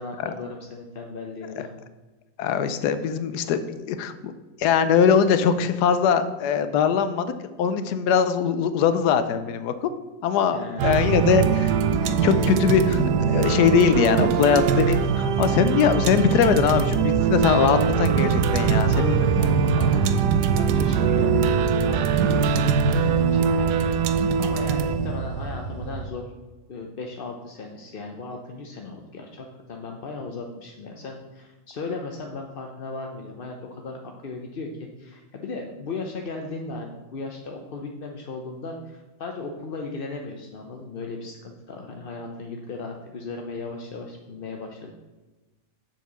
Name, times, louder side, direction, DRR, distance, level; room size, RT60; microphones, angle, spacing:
voice 1, 0.0-1.7 10.5-11.0 18.6-20.1 20.5-26.3 26.7-44.9, left 3 dB, 50° left, 2 dB, 0.7 m, -36 dB
voice 2, 2.4-4.3 4.6-9.9 10.2-13.0 13.3-19.1, left 7 dB, 80° left, 11 dB, 1.2 m, -21 dB
sound 1, 10.8-26.1, right 6 dB, 85° right, 1.2 m, -22 dB
7.4 x 4.5 x 6.7 m, 1.2 s
omnidirectional pair, 1.7 m